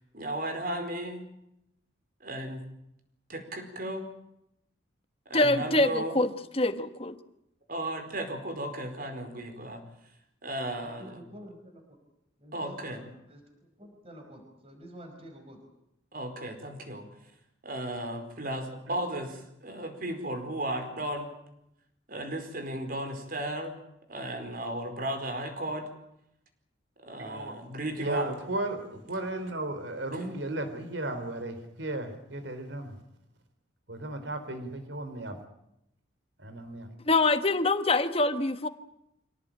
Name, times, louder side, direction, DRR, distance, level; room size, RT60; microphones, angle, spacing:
voice 1, 0.1-1.2 2.2-2.6 3.3-4.1 5.3-6.2 7.7-9.8 10.4-11.2 12.5-13.0 16.1-17.1 17.6-21.3 22.1-23.7 24.1-25.9 27.0-28.4 30.1-30.2, right 1 dB, 50° right, 7 dB, 4.7 m, -35 dB
voice 2, 5.3-7.2 37.1-38.7, left 2 dB, 30° left, 10 dB, 1.5 m, -25 dB
voice 3, 10.8-11.8 12.4-13.4 13.8-15.6, equal, 30° right, 2 dB, 5.2 m, -48 dB
voice 4, 27.2-27.6 28.0-33.0 33.9-35.4 36.4-36.9, right 1 dB, 70° right, 8 dB, 4.2 m, -35 dB
26.0 x 18.0 x 9.0 m, 0.81 s
head